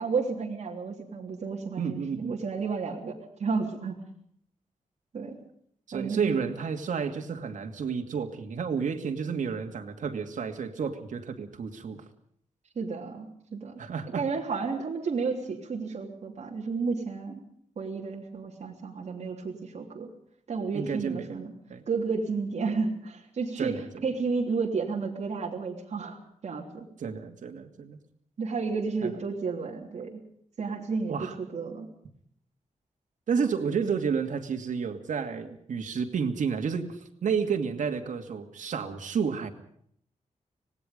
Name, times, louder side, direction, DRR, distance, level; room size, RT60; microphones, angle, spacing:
voice 1, 0.0-4.0 5.1-5.4 5.9-6.4 12.7-13.7 14.1-17.4 17.8-20.1 20.5-21.5 21.9-26.9 28.4-30.2 30.6-31.9, right 4 dB, 60° right, -1 dB, 3.4 m, -32 dB
voice 2, 1.8-2.4 5.9-12.0 13.8-14.3 20.7-21.4 21.7-21.8 23.6-23.9 27.0-28.0 29.0-29.1 31.1-31.4 33.3-39.5, right 6 dB, 85° right, 4 dB, 2.4 m, -31 dB
26.0 x 19.0 x 5.3 m, 0.65 s
wide cardioid pair, 145°, 13 cm